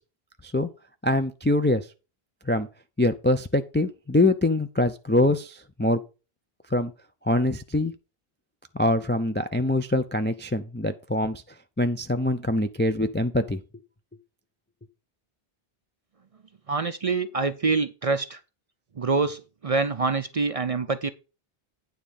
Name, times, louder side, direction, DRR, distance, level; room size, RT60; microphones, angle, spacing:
voice 1, 1.0-1.9 2.5-2.7 3.0-6.0 6.7-6.9 7.2-7.9 8.7-11.4 11.8-13.6, left 1 dB, 20° left, 0.3 m, -24 dB
voice 2, 16.7-18.4 18.9-21.1, right 4 dB, 45° right, 0.5 m, -26 dB
9.4 x 3.7 x 7.0 m
omnidirectional pair, 1.0 m